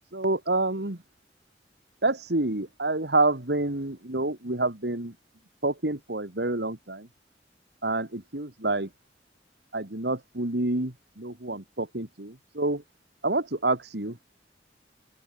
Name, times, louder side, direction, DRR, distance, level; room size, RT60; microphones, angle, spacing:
voice 1, 0.1-1.0 2.0-5.1 5.6-7.1 7.8-8.9 9.7-12.8 13.2-14.1, right 2 dB, 70° right, 2.4 m, -28 dB
open air
head